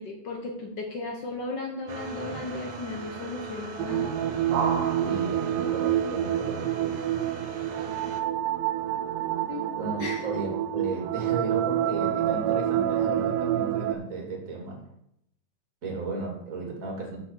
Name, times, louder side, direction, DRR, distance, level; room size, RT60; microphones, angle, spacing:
voice 1, 0.0-4.1 9.5-9.7 10.0-10.3, left 2 dB, 85° left, 1 dB, 0.9 m, -35 dB
sound 1, 1.9-8.2, right 4 dB, 65° right, 1.9 m, -36 dB
sound 2, 3.8-14.0, right 11 dB, 85° right, 2.3 m, -28 dB
voice 2, 5.0-7.3 9.8-14.8 15.8-17.2, right 3 dB, 25° right, 0 dB, 2.4 m, -35 dB
6.6 x 6.2 x 7.3 m, 0.75 s
omnidirectional pair, 3.9 m